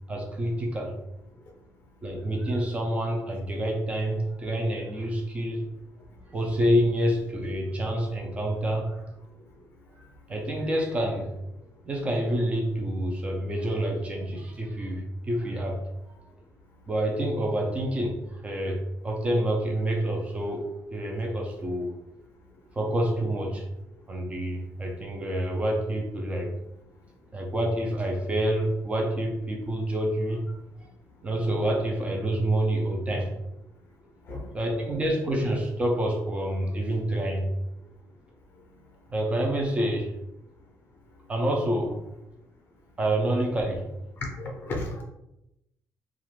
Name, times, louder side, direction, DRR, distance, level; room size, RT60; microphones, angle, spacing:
voice 1, 0.1-1.0 2.0-5.7 6.3-9.0 10.3-11.4 11.8-15.8 16.9-22.0 22.7-23.7 24.1-26.5 27.3-30.4 31.2-33.3 34.5-37.5 39.1-40.1 41.3-42.0 43.0-43.9, right 1 dB, 20° right, 1 dB, 0.5 m, -27 dB
voice 2, 44.4-45.0, left 2 dB, 35° left, 1 dB, 0.6 m, -34 dB
2.4 x 2.4 x 3.1 m, 0.87 s
cardioid pair, 155°, 7 cm